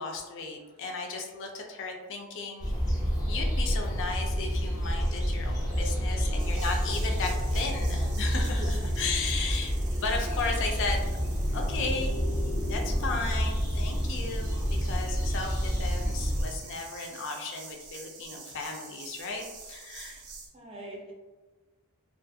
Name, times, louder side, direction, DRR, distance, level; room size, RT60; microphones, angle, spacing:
voice 1, 0.0-2.7 3.3-11.0 11.5-12.2 12.7-20.1, left 4 dB, 55° left, 2 dB, 0.4 m, -35 dB
sound 1, 2.6-16.4, equal, 15° left, 0.6 m, -29 dB
sound 2, 6.4-20.5, right 5 dB, 80° right, 0.6 m, -48 dB
voice 2, 19.9-20.2 20.5-21.1, right 1 dB, 25° right, -2 dB, 0.5 m, -45 dB
2.4 x 2.3 x 2.6 m, 1.3 s
head